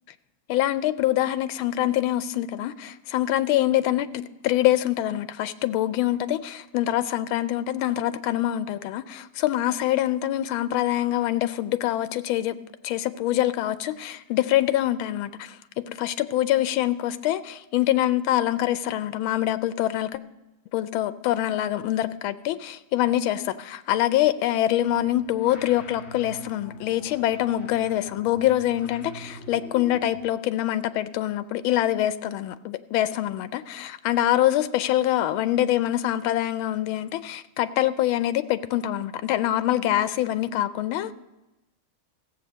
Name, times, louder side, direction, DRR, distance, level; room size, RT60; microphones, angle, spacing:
voice 1, 0.5-12.6 12.8-20.2 20.7-41.1, left 13 dB, 85° left, 14 dB, 1.4 m, -25 dB
sound 1, 24.7-30.3, equal, 35° left, 1.5 m, -45 dB
15.0 x 7.9 x 6.2 m, 1.0 s
omnidirectional pair, 2.2 m